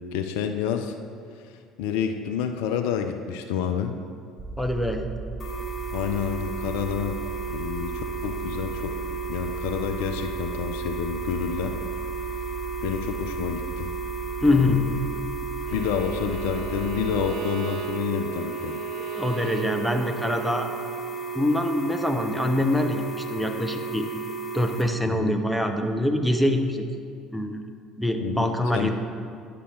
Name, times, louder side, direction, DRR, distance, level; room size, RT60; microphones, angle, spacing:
voice 1, 0.1-0.9 1.5-3.9 5.9-7.2 7.5-9.0 9.3-11.8 12.8-13.9 14.5-14.7 15.7-18.8 25.0-25.4 28.2-28.9, left 8 dB, 65° left, 7 dB, 0.4 m, -29 dB
sound 1, 4.4-17.3, right 3 dB, 30° right, 1.5 m, -37 dB
voice 2, 4.6-5.1 14.4-14.8 19.1-20.7 21.3-24.1 24.5-26.8 27.3-27.6 28.0-28.9, left 1 dB, ahead, 4 dB, 0.8 m, -24 dB
sound 2, 5.4-24.8, right 5 dB, 30° left, 1.6 m, -34 dB
Bowed string instrument, 15.7-20.7, right 8 dB, 60° right, 0.5 m, -37 dB
9.6 x 6.7 x 3.8 m, 2.2 s
figure-of-eight pair, 55°, 0 cm